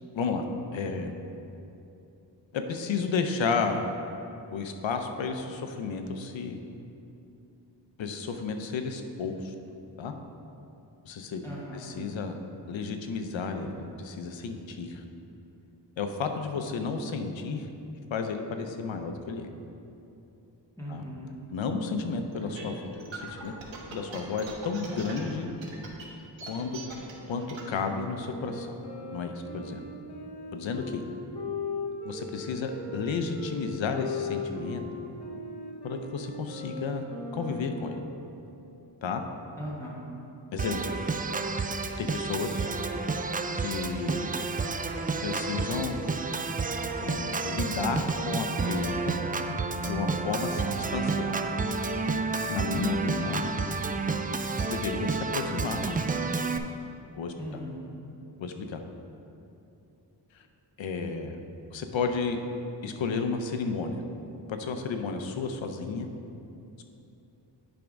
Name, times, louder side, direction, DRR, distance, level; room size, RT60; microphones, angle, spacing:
voice 1, 0.1-0.5 0.7-1.1 2.5-3.8 4.5-6.6 8.0-9.5 10.0-10.1 11.0-11.4 11.7-12.3 12.7-15.0 16.0-17.7 18.1-19.5 20.9-21.0 21.5-23.5 23.9-25.5 26.4-26.8 27.3-28.8 29.1-29.8 30.5-31.0 32.1-34.8 35.8-37.0 37.3-38.0 39.0-39.2 40.5-41.1 42.0-42.7 43.5-44.4 45.2-46.0 47.0-49.2 49.8-51.4 52.5-53.5 54.6-56.0 57.2-57.3 58.4-58.8 60.3-60.4 60.8-61.4 61.7-62.4 62.8-64.0 64.5-66.1, left 4 dB, 85° left, 6 dB, 0.7 m, -32 dB
voice 2, 11.4-11.9 20.8-21.4 39.6-40.1 57.4-57.9, equal, 5° left, -7 dB, 1.6 m, -39 dB
sound 1, 22.3-27.7, right 4 dB, 85° right, 1.2 m, -42 dB
Wind instrument woodwind instrument, 28.1-38.2, left 3 dB, 60° left, 1.0 m, -38 dB
Organ, 40.6-56.6, right 4 dB, 20° right, 0.3 m, -30 dB
10.5 x 3.5 x 5.2 m, 2.8 s
wide cardioid pair, 80°, 44 cm